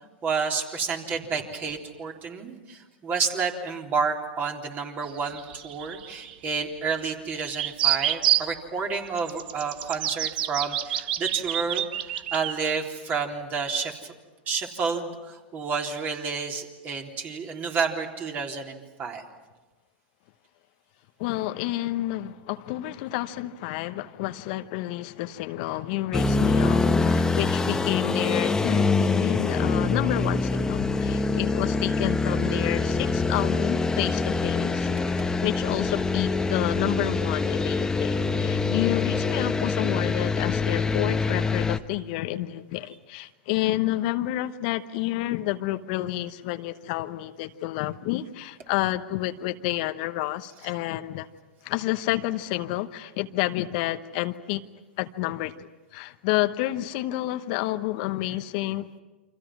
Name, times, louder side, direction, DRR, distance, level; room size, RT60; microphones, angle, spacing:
voice 1, 0.2-14.1 14.5-19.2 27.3-27.6 35.1-35.2, right 5 dB, 35° right, 2 dB, 3.7 m, -30 dB
sound 1, 5.0-6.7 7.4-8.5 9.2-12.5, right 12 dB, 65° right, 1.2 m, -28 dB
voice 2, 21.2-34.9 35.4-51.3 51.6-54.6 55.0-59.0, left 16 dB, 55° left, 10 dB, 1.0 m, -30 dB
sound 2, 26.1-41.8, left 3 dB, 10° left, 1.2 m, -25 dB
29.0 x 25.5 x 6.1 m, 1.2 s
hypercardioid pair, 105°, 5 cm